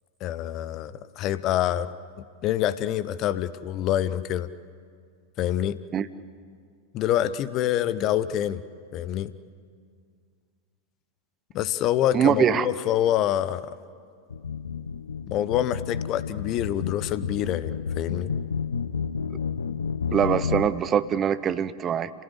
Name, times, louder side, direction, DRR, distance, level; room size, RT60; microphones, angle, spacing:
voice 1, 0.2-1.9 2.4-4.5 5.4-5.8 6.9-8.6 8.9-9.3 11.5-13.7 15.3-18.3, left 11 dB, 35° left, 15 dB, 0.9 m, -26 dB
voice 2, 12.1-12.7 20.1-22.1, right 8 dB, 25° right, 14 dB, 0.8 m, -23 dB
sound 1, 14.3-20.7, left 6 dB, 70° left, 0.8 m, -31 dB
29.0 x 18.5 x 9.8 m, 2.2 s
figure-of-eight pair, 90°, 0 cm